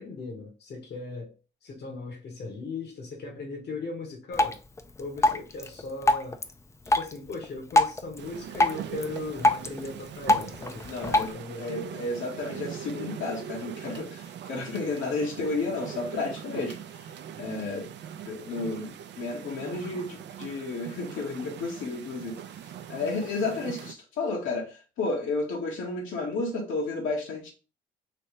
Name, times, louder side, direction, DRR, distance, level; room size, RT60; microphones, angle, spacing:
voice 1, 0.0-1.3 1.6-4.6 5.0-6.4 6.9-11.7, left 3 dB, 55° left, 1.1 m, -38 dB
Drip, 4.3-11.3, left 2 dB, 15° left, 0.4 m, -27 dB
sound 1, 8.2-23.9, right 9 dB, 65° right, 0.4 m, -42 dB
voice 2, 10.8-17.9 18.2-27.5, left 3 dB, 80° left, 1.3 m, -32 dB
3.3 x 2.8 x 3.1 m
cardioid pair, 90°, 20 cm